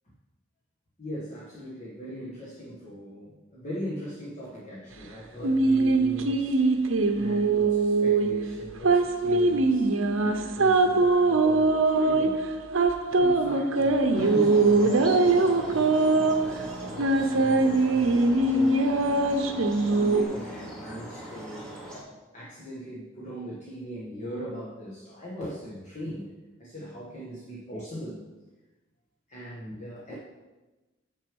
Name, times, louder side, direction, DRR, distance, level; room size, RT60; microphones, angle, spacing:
voice 1, 1.0-6.5 7.1-9.9 10.2-12.4 13.2-16.3 16.8-18.9 19.8-21.6 22.3-26.3 26.6-28.2 29.3-30.2, equal, 35° left, -6 dB, 1.5 m, -39 dB
sound 1, 5.4-20.2, right 3 dB, 70° right, 0.7 m, -22 dB
sound 2, 14.1-22.0, equal, 5° left, 1.6 m, -40 dB
6.8 x 6.3 x 5.3 m, 1.1 s
head